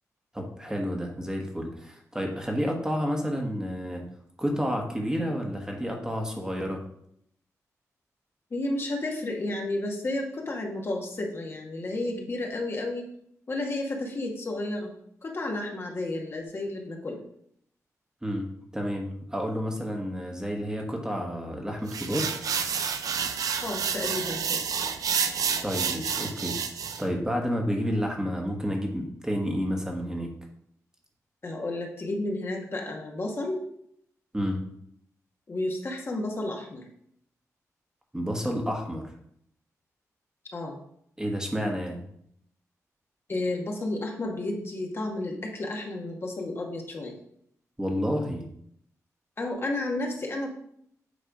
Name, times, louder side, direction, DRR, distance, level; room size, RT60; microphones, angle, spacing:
voice 1, 0.3-4.0 4.4-6.8 18.2-18.5 18.7-22.3 25.6-26.5 27.0-30.3 34.3-34.6 38.1-39.0 41.2-42.0 47.8-48.5, equal, 10° right, 1 dB, 1.3 m, -30 dB
voice 2, 8.5-13.1 13.5-14.9 15.2-17.2 23.6-24.6 31.4-33.6 35.5-36.9 40.5-40.8 43.3-47.1 49.4-50.5, left 2 dB, 45° left, 0 dB, 1.4 m, -32 dB
sound 1, 21.9-27.0, right 6 dB, 80° right, 0.6 m, -29 dB
8.4 x 3.3 x 5.1 m, 0.70 s
cardioid pair, 85°, 6 cm